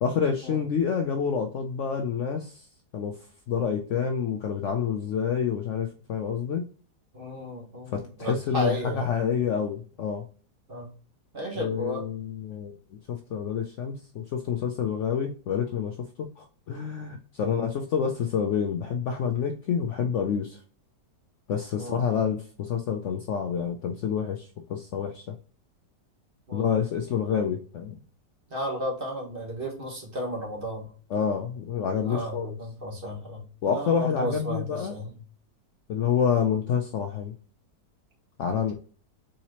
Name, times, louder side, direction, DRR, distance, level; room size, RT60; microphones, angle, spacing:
voice 1, 0.0-2.7 2.9-3.2 3.5-6.6 7.9-10.3 11.6-12.8 13.1-20.6 21.5-25.4 26.5-28.0 31.1-32.6 33.6-34.9 35.9-37.3 38.4-38.7, left 7 dB, 85° left, 5 dB, 0.6 m, -28 dB
voice 2, 7.1-9.1 10.7-10.9 11.3-12.0 17.4-17.6 21.8-22.0 26.5-26.7 28.5-30.9 32.0-35.2, equal, 35° right, -1 dB, 1.3 m, -34 dB
4.3 x 3.7 x 2.9 m, 0.39 s
omnidirectional pair, 1.9 m